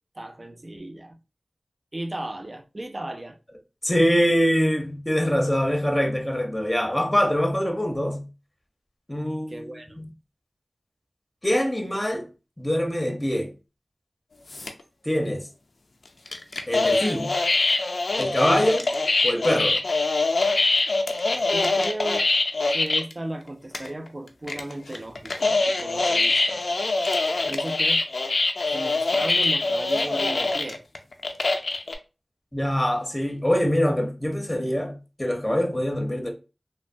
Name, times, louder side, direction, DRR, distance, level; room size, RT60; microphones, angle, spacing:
voice 1, 0.2-1.2 1.9-3.4 9.5-10.0 21.5-22.2 22.7-26.6 27.5-28.0 28.7-30.8, right 1 dB, 45° right, 0.4 m, -35 dB
voice 2, 3.8-8.2 9.1-9.7 10.0-10.1 11.4-12.3 12.6-13.5 15.1-15.4 16.7-17.3 18.2-18.9 19.2-19.8 32.5-36.3, equal, 15° left, 0.6 m, -24 dB
sound 1, 14.5-14.8 16.3-23.1 23.5-23.6 23.7-24.1 24.5-31.9, left 3 dB, 85° left, 0.3 m, -24 dB
3.1 x 2.1 x 2.5 m
wide cardioid pair, 45°, 0 cm